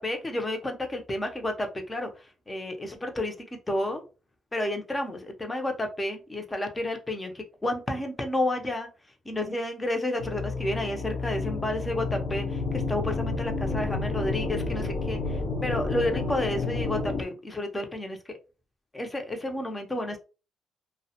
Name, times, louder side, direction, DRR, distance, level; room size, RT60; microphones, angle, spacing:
voice 1, 0.0-2.1 2.5-3.3 3.7-4.0 4.5-8.9 9.3-15.2 15.6-18.2 18.9-20.2, left 1 dB, 20° left, 5 dB, 0.6 m, -31 dB
sound 1, 10.2-17.2, left 3 dB, 75° left, 0.5 m, -30 dB
2.2 x 2.1 x 2.8 m, 0.33 s
cardioid pair, 90°, 0 cm